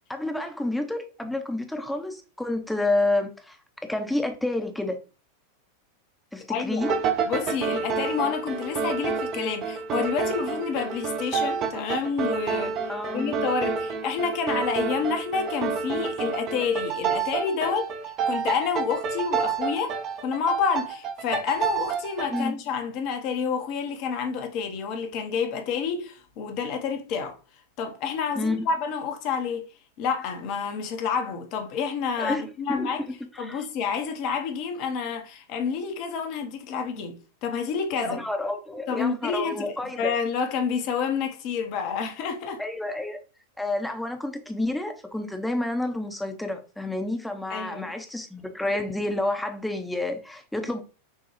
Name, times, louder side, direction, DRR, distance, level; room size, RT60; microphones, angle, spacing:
voice 1, 0.1-3.6 3.8-5.0 6.3-6.9 12.9-13.3 22.3-22.6 28.4-28.6 32.2-32.4 32.7-32.9 33.3-33.7 38.0-40.1 42.6-43.2 43.6-50.8, left 2 dB, 5° left, 0.7 m, -29 dB
voice 2, 6.5-7.0 7.3-19.9 20.2-27.4 27.8-29.7 30.0-33.0 33.4-38.2 38.9-42.6 47.5-47.9, left 6 dB, 45° left, 0.7 m, -29 dB
sound 1, 6.8-22.5, right 5 dB, 35° right, 0.6 m, -29 dB
6.4 x 2.3 x 3.0 m
figure-of-eight pair, 90°, 0 cm